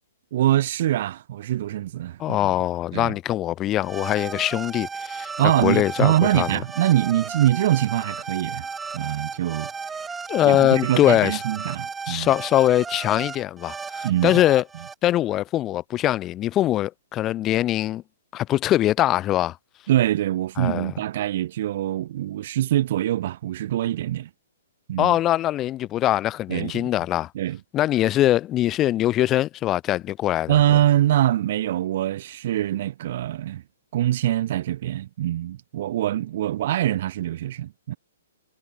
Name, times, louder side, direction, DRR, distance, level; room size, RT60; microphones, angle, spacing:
voice 1, 0.3-2.5 2.9-3.1 5.4-8.7 8.9-10.1 10.4-12.3 14.0-14.4 19.9-24.3 24.9-25.2 26.5-26.9 27.3-27.6 30.5-33.6 33.9-38.0, right 13 dB, 55° right, 2.2 m, -24 dB
voice 2, 2.2-5.3 5.6-6.6 10.3-11.4 12.1-14.6 15.0-18.0 18.3-19.6 20.6-20.9 25.0-27.3 27.7-30.6, left 13 dB, 25° left, 4.5 m, -22 dB
sound 1, 3.8-14.9, right 5 dB, 10° right, 5.5 m, -34 dB
hypercardioid pair, 125°, 0 cm